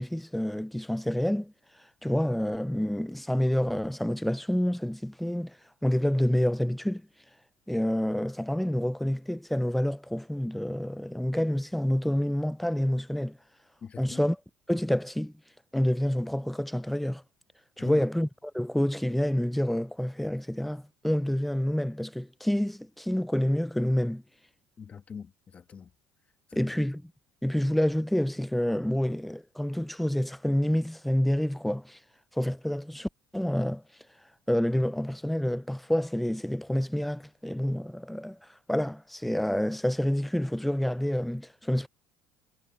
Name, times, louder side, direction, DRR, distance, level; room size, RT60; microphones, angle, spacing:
voice 1, 0.0-1.5 2.0-5.6 5.8-7.0 7.7-13.4 14.0-14.4 14.7-15.3 15.7-17.2 17.8-18.3 18.5-24.2 26.5-27.1 27.4-32.0 32.3-33.8 34.5-38.4 38.7-41.9, equal, ahead, 0.5 m, -28 dB
voice 2, 13.8-14.3 17.8-18.0 24.8-25.9 26.5-26.8, left 6 dB, 30° left, 1.8 m, -43 dB
supercardioid pair, 110°, 4 cm